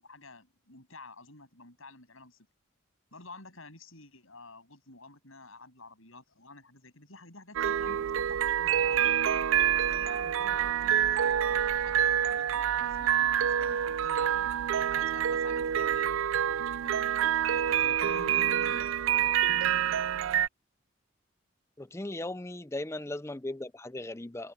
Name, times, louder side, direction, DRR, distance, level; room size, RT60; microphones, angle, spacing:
voice 1, 0.0-2.5 3.1-9.1 9.7-16.1 16.8-18.9, left 3 dB, 75° left, 7.8 m, -51 dB
sound 1, 7.5-20.5, right 9 dB, 70° right, 0.4 m, -27 dB
voice 2, 21.8-24.5, left 1 dB, 15° left, 0.5 m, -37 dB
head